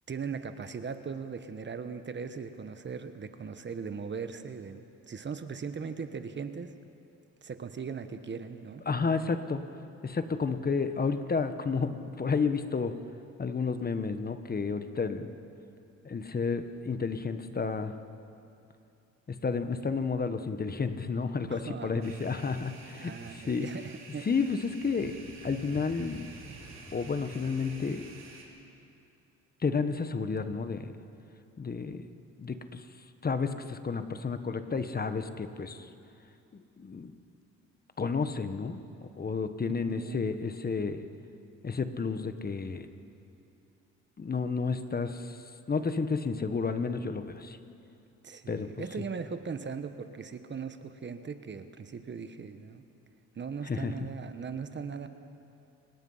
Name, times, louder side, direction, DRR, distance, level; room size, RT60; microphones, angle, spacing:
voice 1, 0.1-6.7 7.4-8.8 21.5-22.1 22.9-24.3 39.9-40.3 48.2-52.8 53.3-55.1, right 5 dB, 35° right, 9 dB, 1.2 m, -39 dB
voice 2, 8.9-9.6 10.0-12.9 13.4-15.3 16.0-17.9 19.3-23.7 24.2-25.2 25.4-26.3 26.9-28.1 29.6-30.9 31.6-32.0 32.4-32.9 33.2-35.9 36.8-37.1 38.0-41.0 41.6-42.9 44.2-47.6 48.5-48.7 53.6-54.1, left 5 dB, 30° left, 9 dB, 1.2 m, -31 dB
sound 1, 22.0-28.4, right 3 dB, 60° right, 4.1 m, -48 dB
29.0 x 17.5 x 5.6 m, 2.6 s
cardioid pair, 90°, 30 cm